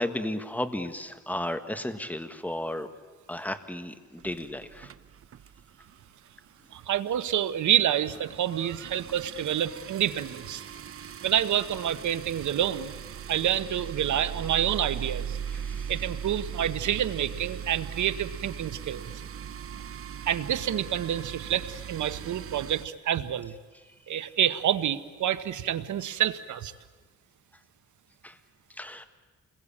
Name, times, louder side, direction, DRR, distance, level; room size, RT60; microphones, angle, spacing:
voice 1, 0.0-2.9 3.3-4.9 15.5-15.9 24.1-24.2 28.2-28.4 28.8-29.1, left 1 dB, 5° left, 9 dB, 1.6 m, -34 dB
sound 1, 4.2-6.0 6.3-6.5 6.8-6.9 7.1-22.9, right 8 dB, 50° right, 0.8 m, -39 dB
voice 2, 6.7-10.7 11.2-12.9 13.3-15.4 15.9-19.1 20.2-23.5 24.1-26.7, right 10 dB, 90° right, 13 dB, 1.1 m, -28 dB
28.5 x 21.5 x 8.6 m, 1.3 s
cardioid pair, 115°, 29 cm